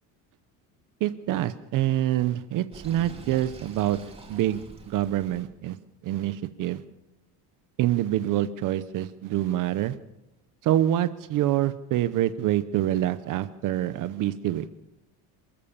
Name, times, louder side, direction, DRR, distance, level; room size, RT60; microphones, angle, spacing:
voice 1, 1.0-4.0 4.3-5.8 6.0-6.8 7.8-10.0 10.6-14.7, right 13 dB, 45° right, 13 dB, 0.8 m, -26 dB
Sink (filling or washing), 2.7-5.4, right 3 dB, 15° right, 2.8 m, -45 dB
28.5 x 14.0 x 7.3 m, 0.93 s
cardioid pair, 170°, 43 cm